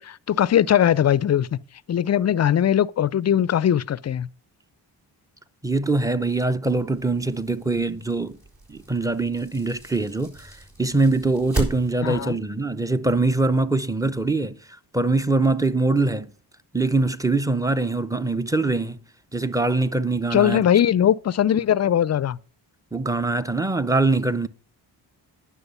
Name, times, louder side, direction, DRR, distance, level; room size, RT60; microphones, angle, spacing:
voice 1, 0.0-1.5 1.9-4.3 12.0-12.4 20.3-22.4, left 10 dB, 35° left, 0.4 m, -20 dB
voice 2, 5.6-8.4 8.7-16.3 16.7-19.0 19.3-20.7 22.9-24.5, right 2 dB, 5° right, 0.6 m, -23 dB
sound 1, 6.6-12.2, right 1 dB, 50° right, 4.3 m, -35 dB
9.7 x 6.2 x 5.5 m
supercardioid pair, 45°, 47 cm